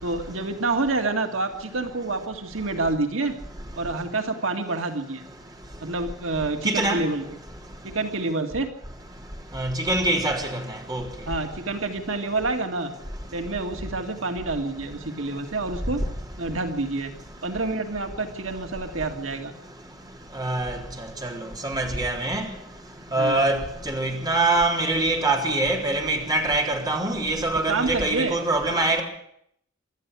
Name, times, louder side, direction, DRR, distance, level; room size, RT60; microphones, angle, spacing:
voice 1, 0.0-3.4 3.8-5.2 5.8-7.2 7.8-8.7 11.3-12.9 13.3-16.0 16.4-17.1 17.4-19.5 23.2-23.5 27.7-28.4, right 3 dB, 85° right, 2.1 m, -28 dB
voice 2, 6.6-7.0 9.5-10.5 10.9-11.0 20.4-20.8 21.2-21.3 21.6-22.5 23.1-23.6 23.9-29.0, right 2 dB, 20° right, 3.7 m, -24 dB
25.0 x 13.0 x 8.3 m
head